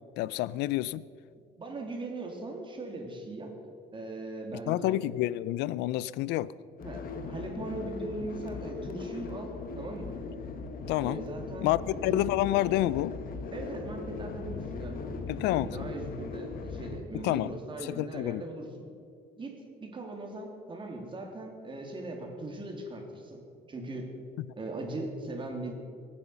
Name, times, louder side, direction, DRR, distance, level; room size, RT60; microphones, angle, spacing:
voice 1, 0.2-1.0 4.7-6.5 10.9-11.2 11.6-13.2 15.3-15.9 17.1-17.5 17.8-18.4, left 15 dB, 90° left, 0.5 m, -29 dB
voice 2, 1.6-3.5 3.9-5.0 6.8-10.2 11.0-12.3 13.5-18.9 19.4-23.4 23.7-24.1 24.5-25.7, right 2 dB, 30° right, 3.1 m, -39 dB
sound 1, 6.8-17.0, left 4 dB, 55° left, 1.4 m, -39 dB
23.0 x 9.8 x 5.8 m
cardioid pair, 110°, 17 cm